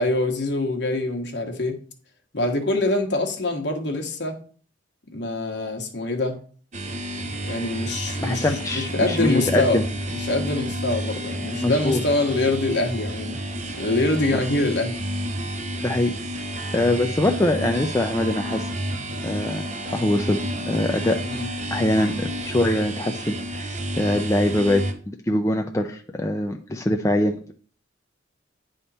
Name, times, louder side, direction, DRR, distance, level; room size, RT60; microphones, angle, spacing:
voice 1, 0.0-1.8 2.3-4.4 5.1-6.4 7.4-9.8 10.1-13.4 13.8-15.0 21.2-21.5, left 2 dB, 60° left, 3 dB, 1.2 m, -24 dB
sound 1, 6.7-24.9, equal, 40° right, 0.8 m, -30 dB
voice 2, 8.2-9.9 11.6-12.0 15.8-16.4 16.7-18.7 19.2-19.6 19.9-21.2 21.7-24.8 25.3-27.5, left 1 dB, 15° left, 4 dB, 0.4 m, -23 dB
9.8 x 3.6 x 4.1 m, 0.42 s
head